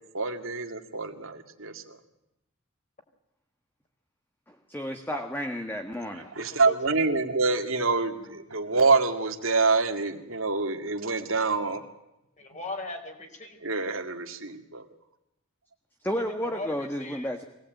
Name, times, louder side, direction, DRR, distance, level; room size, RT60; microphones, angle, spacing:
voice 1, 0.1-2.0 6.3-11.8 13.6-14.8, right 3 dB, 70° right, 5 dB, 2.2 m, -26 dB
voice 2, 4.5-6.3 16.0-17.4, equal, 10° left, 4 dB, 1.6 m, -32 dB
voice 3, 6.2-7.0 12.4-13.6 16.4-17.3, left 2 dB, 35° left, 5 dB, 4.5 m, -39 dB
24.5 x 18.5 x 9.2 m, 0.87 s
head